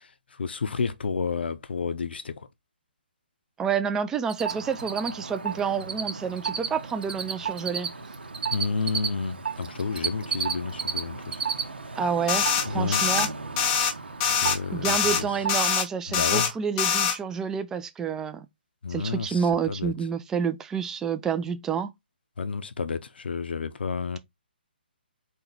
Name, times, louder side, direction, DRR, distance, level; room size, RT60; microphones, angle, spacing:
voice 1, 0.0-2.5 8.5-11.4 12.7-13.0 14.3-15.3 16.1-16.5 18.8-19.9 22.4-24.2, left 5 dB, 75° left, 0.6 m, -31 dB
voice 2, 3.6-7.9 12.0-13.3 14.7-18.5 18.9-21.9, right 6 dB, 10° right, 0.4 m, -29 dB
Cricket, 4.3-4.5 4.8-6.1 6.4-9.1 9.6-11.0 11.3-11.6 12.0-12.1 14.6-14.7 15.1-15.2 15.3-15.4, right 6 dB, 60° right, 1.0 m, -29 dB
sound 1, 4.4-15.8, right 5 dB, 85° right, 1.1 m, -36 dB
sound 2, 12.3-12.6 12.9-13.3 13.6-13.9 14.2-14.6 14.8-15.2 15.5-15.8 16.1-16.5 16.8-17.1, left 7 dB, 20° left, 0.7 m, -23 dB
4.4 x 2.9 x 3.9 m
hypercardioid pair, 150°, 6 cm